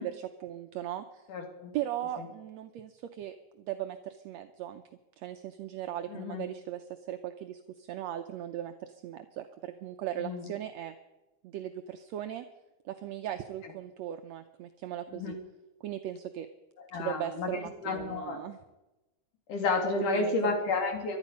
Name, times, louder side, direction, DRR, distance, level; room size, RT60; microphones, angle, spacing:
voice 1, 0.0-1.3 1.7-4.8 5.2-10.9 11.4-12.5 12.9-15.4 15.8-16.5 16.9-18.6 20.0-20.5, right 12 dB, 75° right, 7 dB, 1.7 m, -38 dB
voice 2, 1.3-1.7 2.2-2.3 6.1-6.5 10.2-10.4 15.1-15.3 16.9-17.5 17.8-18.4 19.5-21.2, left 3 dB, 85° left, 3 dB, 4.0 m, -31 dB
20.0 x 12.5 x 5.4 m, 1.0 s
omnidirectional pair, 3.6 m